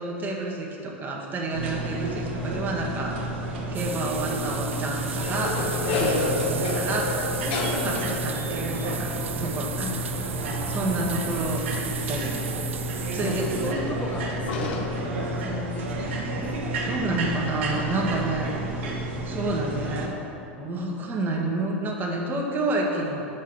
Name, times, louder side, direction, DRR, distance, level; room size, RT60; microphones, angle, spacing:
voice 1, 0.0-3.2 3.7-7.1 7.8-9.1 9.4-10.0 10.7-12.4 13.1-14.0 16.8-20.1 20.6-23.3, right 2 dB, 30° right, -1 dB, 1.4 m, -29 dB
sound 1, 1.5-20.1, right 1 dB, 70° right, 1.2 m, -31 dB
sound 2, 3.5-4.0 4.7-15.5, left 4 dB, 65° left, 0.8 m, -33 dB
sound 3, 3.7-13.7, right 8 dB, 85° right, 0.4 m, -36 dB
voice 2, 7.5-8.2 9.8-10.0 10.7-11.2 13.1-16.6, left 3 dB, 20° left, 0 dB, 1.3 m, -36 dB
5.8 x 5.4 x 6.7 m, 2.9 s
hypercardioid pair, 95°, 7 cm